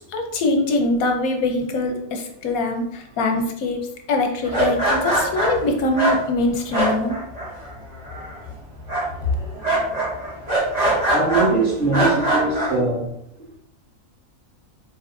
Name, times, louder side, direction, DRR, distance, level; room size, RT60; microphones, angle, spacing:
voice 1, 0.1-3.8 4.1-7.2, left 2 dB, 90° left, 1.2 m, -23 dB
sound 1, 4.4-7.7 8.0-8.5 8.9-11.5 11.9-12.7, right 1 dB, 30° right, 1.8 m, -22 dB
voice 2, 11.1-13.1 13.4-13.5, right 3 dB, 70° right, 2.0 m, -21 dB
5.4 x 3.7 x 2.6 m
omnidirectional pair, 1.4 m